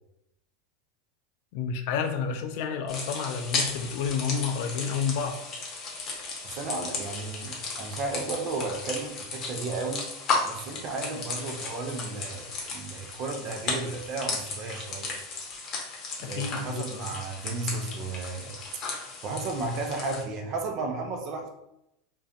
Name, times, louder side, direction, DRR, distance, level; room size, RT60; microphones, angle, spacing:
voice 1, 1.5-5.4 16.2-17.1, left 6 dB, 65° left, 5 dB, 0.4 m, -30 dB
sound 1, 2.9-20.2, left 4 dB, 40° left, 0.7 m, -35 dB
voice 2, 6.4-10.1 10.4-15.2 16.2-18.6 19.2-21.5, right 3 dB, 50° right, 3 dB, 0.5 m, -34 dB
2.5 x 2.3 x 2.4 m, 0.83 s
hypercardioid pair, 95°, 0 cm